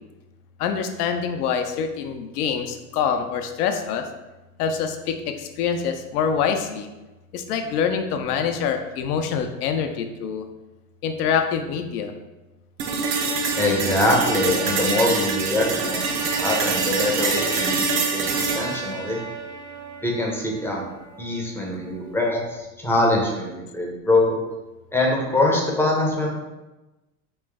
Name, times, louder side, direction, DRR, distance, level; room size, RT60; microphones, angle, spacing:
voice 1, 0.6-4.0 4.6-6.9 7.3-10.4 11.0-12.1, left 7 dB, 80° left, 6 dB, 0.6 m, -25 dB
sound 1, 12.8-20.8, right 4 dB, 40° right, 0.5 m, -25 dB
voice 2, 13.6-19.2 20.0-20.9 21.2-24.4 24.9-26.3, left 2 dB, 5° left, -2 dB, 0.6 m, -23 dB
3.1 x 3.0 x 3.5 m, 1.1 s
supercardioid pair, 115°, 45 cm